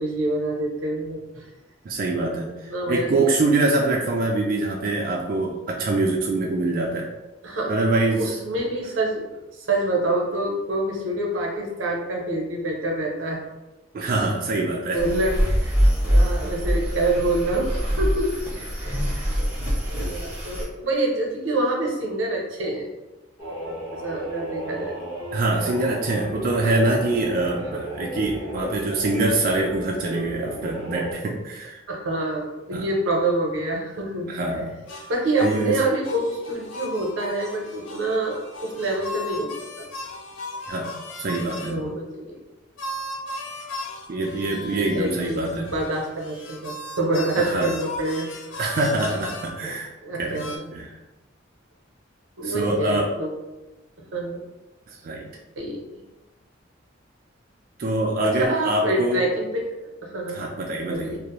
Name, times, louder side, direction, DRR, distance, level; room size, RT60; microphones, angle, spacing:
voice 1, 0.0-1.5 2.4-3.3 7.4-7.7 8.2-9.3 9.5-13.4 14.9-15.7 16.0-19.5 19.9-22.9 23.9-24.9 26.6-26.7 27.6-27.8 31.9-34.6 35.1-39.9 41.6-42.4 44.7-48.3 49.6-49.7 50.0-50.7 52.4-53.3 54.1-54.4 55.6-55.8 58.2-60.4 60.9-61.2, right 2 dB, 85° right, 0 dB, 0.6 m, -27 dB
voice 2, 1.9-7.1 7.7-8.4 13.9-15.0 25.3-31.8 32.7-32.8 34.3-34.7 35.4-35.8 40.7-40.9 41.2-41.9 44.1-45.7 47.4-47.7 48.6-49.9 50.2-50.4 50.7-50.9 52.4-53.1 54.9-55.2 57.8-59.2 60.3-61.2, right 2 dB, 45° right, -1 dB, 0.3 m, -24 dB
sound 1, 15.0-20.6, equal, 5° right, 0.6 m, -23 dB
sound 2, 23.4-31.1, equal, 30° left, 0.9 m, -34 dB
sound 3, 34.9-41.8 42.8-49.5 50.3-50.6, left 1 dB, 75° left, 0.4 m, -37 dB
2.4 x 2.0 x 2.9 m, 1.0 s
head